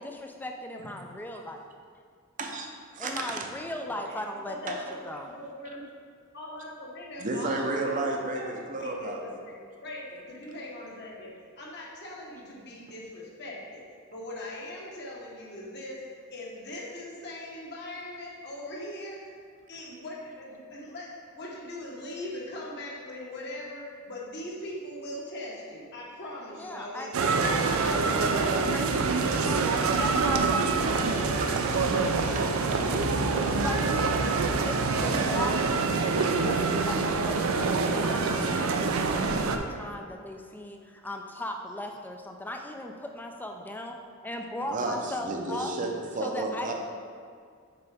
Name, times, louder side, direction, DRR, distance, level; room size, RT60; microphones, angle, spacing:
voice 1, 0.0-1.6 3.0-5.3 26.5-32.7 33.6-44.0 44.2-45.7 46.2-46.7, left 1 dB, 10° left, 3 dB, 0.4 m, -38 dB
voice 2, 2.9-3.5 4.7-4.8 7.2-9.2 29.3-29.4 31.0-31.1 31.4-31.8 32.3-33.7 35.1-35.2 36.2-36.3 44.7-46.7, right 2 dB, 35° right, 2 dB, 0.6 m, -33 dB
voice 3, 3.8-5.0 5.2-5.8 6.3-13.8 14.1-19.3 19.7-28.5, left 1 dB, 55° left, -4 dB, 1.2 m, -41 dB
sound 1, 27.1-39.6, right 4 dB, 75° right, 0.5 m, -26 dB
6.8 x 4.6 x 3.4 m, 2.2 s
head